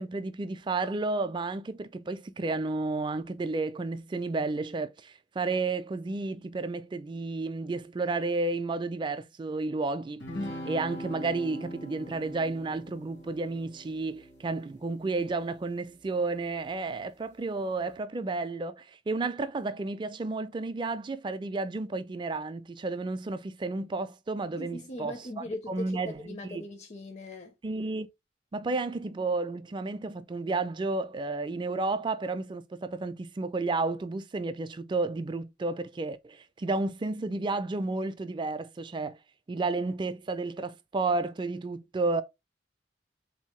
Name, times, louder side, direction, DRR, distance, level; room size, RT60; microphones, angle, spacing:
voice 1, 0.0-25.1 25.7-26.6 27.6-28.1 28.5-39.2 39.5-42.2, right 3 dB, 25° right, 0.3 m, -32 dB
sound 1, 10.2-15.9, equal, 70° left, 1.1 m, -42 dB
voice 2, 24.6-27.5, left 2 dB, 35° left, 0.5 m, -40 dB
3.8 x 2.7 x 3.0 m
head